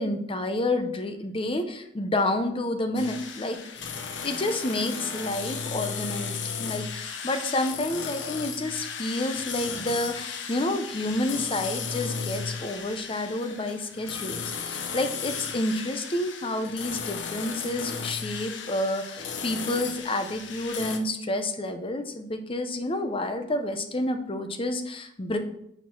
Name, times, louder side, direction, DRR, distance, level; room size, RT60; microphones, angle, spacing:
voice 1, 0.0-3.6 4.2-25.4, left 1 dB, 30° left, 7 dB, 0.7 m, -29 dB
sound 1, 3.0-21.0, left 6 dB, 75° left, 0.8 m, -35 dB
6.0 x 4.6 x 5.9 m, 0.74 s
head